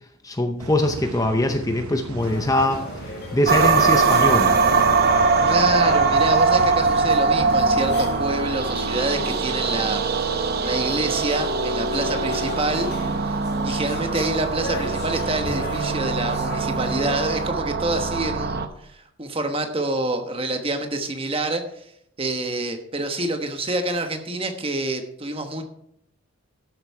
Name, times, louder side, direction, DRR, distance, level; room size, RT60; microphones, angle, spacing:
voice 1, 0.2-2.8 3.3-4.6, left 1 dB, 15° left, 6 dB, 0.6 m, -22 dB
sound 1, 0.6-8.2, right 3 dB, 90° right, 0.9 m, -37 dB
sound 2, 2.2-17.5, left 1 dB, 50° left, 2.0 m, -37 dB
sound 3, 3.5-18.7, right 4 dB, 45° right, 0.8 m, -22 dB
voice 2, 5.5-10.0 10.6-12.9 13.2-13.4 13.6-18.6 18.9-21.6 22.2-25.6, right 2 dB, 25° right, 6 dB, 1.2 m, -27 dB
13.0 x 7.8 x 4.7 m, 0.73 s
head